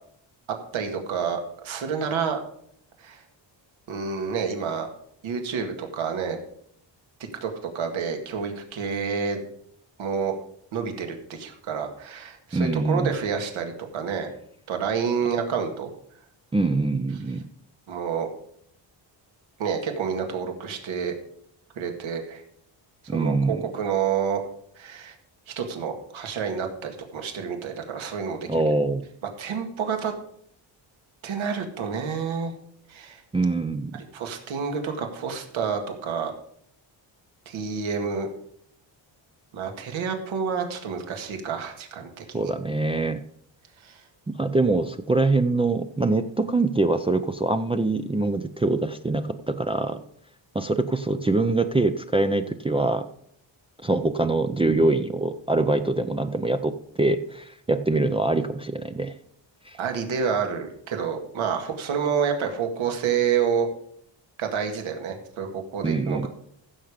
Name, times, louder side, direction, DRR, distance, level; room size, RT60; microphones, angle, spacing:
voice 1, 0.7-2.4 3.0-3.2 3.9-4.9 5.2-6.4 7.4-9.4 10.0-10.4 10.7-14.3 14.7-15.9 17.9-18.3 19.6-21.1 21.8-22.4 23.0-24.4 24.8-25.2 25.5-28.6 29.4-30.1 31.2-32.6 32.9-33.2 34.1-36.3 37.5-38.3 39.5-42.5 43.8-44.0 59.8-63.7 64.4-66.3, right 6 dB, 85° right, 4 dB, 2.1 m, -28 dB
voice 2, 12.5-13.1 16.5-17.4 23.1-23.6 28.5-29.1 33.3-33.9 42.3-43.2 44.3-50.0 50.5-53.1 53.8-59.1 59.7-59.8 65.8-66.3, right 2 dB, 15° right, 7 dB, 0.4 m, -24 dB
15.0 x 7.0 x 5.1 m, 0.67 s
cardioid pair, 135°, 46 cm